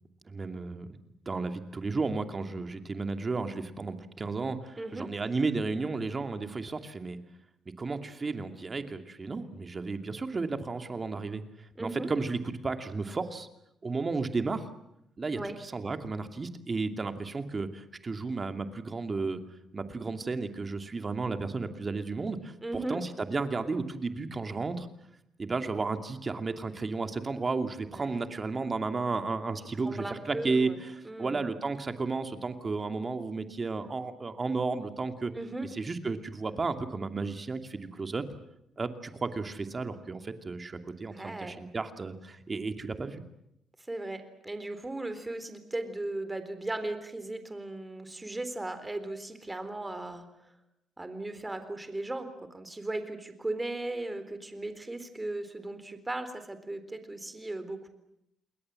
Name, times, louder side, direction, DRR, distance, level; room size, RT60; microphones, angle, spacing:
voice 1, 0.3-1.0 1.3-7.2 7.8-11.4 11.8-13.5 13.8-14.7 15.2-19.4 19.7-24.9 25.4-35.3 35.6-38.2 38.8-43.2, right 3 dB, 30° right, 7 dB, 2.6 m, -33 dB
voice 2, 4.8-5.1 11.8-12.1 15.3-15.5 22.6-23.0 27.9-28.3 29.8-31.4 35.3-35.7 41.1-41.6 43.9-50.5 51.0-57.9, right 2 dB, 15° right, 10 dB, 3.8 m, -37 dB
28.5 x 21.5 x 7.8 m, 0.81 s
cardioid pair, 90°, 0 cm